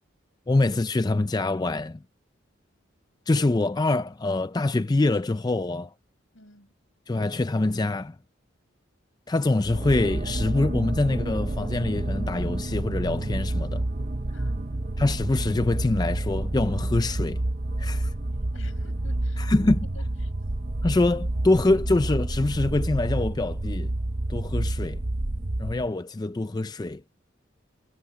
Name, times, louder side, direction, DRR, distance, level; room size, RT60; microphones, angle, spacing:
voice 1, 0.5-2.0 3.3-5.9 7.1-8.2 9.3-13.9 15.0-17.4 17.8-18.1 19.4-19.8 20.8-23.9 24.3-25.0 25.6-27.0, left 2 dB, 20° left, 0.4 m, -25 dB
voice 2, 6.3-6.7 14.3-14.7 18.3-20.4, left 2 dB, 80° left, 7.2 m, -52 dB
sound 1, 9.6-25.9, right 1 dB, 35° right, 0.8 m, -29 dB
head